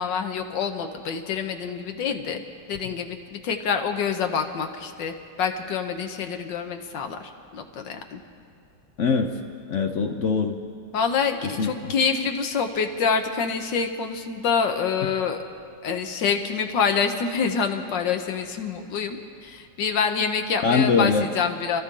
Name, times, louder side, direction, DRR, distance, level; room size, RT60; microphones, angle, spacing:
voice 1, 0.0-2.4 2.7-8.2 10.9-15.4 15.8-21.8, left 6 dB, 75° left, 5 dB, 1.6 m, -26 dB
voice 2, 9.0-9.3 9.7-10.6 11.4-11.9 20.6-21.3, left 5 dB, 60° left, 6 dB, 0.8 m, -22 dB
27.5 x 13.5 x 3.8 m, 2.3 s
omnidirectional pair, 2.0 m